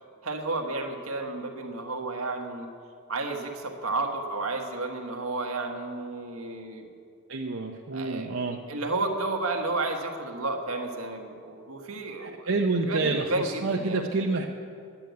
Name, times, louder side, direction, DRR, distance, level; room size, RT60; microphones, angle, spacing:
voice 1, 0.2-2.7 3.1-6.9 7.9-8.3 8.7-12.5 12.9-14.0, right 2 dB, 85° right, 3 dB, 1.4 m, -32 dB
voice 2, 7.3-8.6 12.2-14.5, right 3 dB, 65° right, 0 dB, 0.7 m, -28 dB
10.5 x 8.7 x 9.3 m, 2.4 s
head